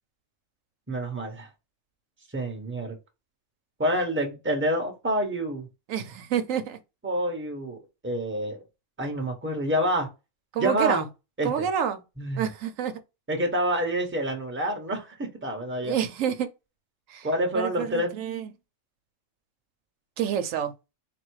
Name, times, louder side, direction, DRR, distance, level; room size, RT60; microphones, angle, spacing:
voice 1, 0.9-1.5 2.3-3.0 3.8-5.7 7.0-8.6 9.0-10.1 10.6-11.0 11.4-11.7 12.2-12.4 13.3-15.9 17.2-18.2, right 1 dB, 10° right, 0.9 m, -27 dB
voice 2, 5.9-6.8 10.5-11.1 11.4-12.0 12.4-12.9 15.8-16.5 17.1-17.3 17.5-18.5 20.2-20.7, right 9 dB, 85° right, 1.0 m, -28 dB
4.2 x 2.2 x 4.6 m
omnidirectional pair, 1.3 m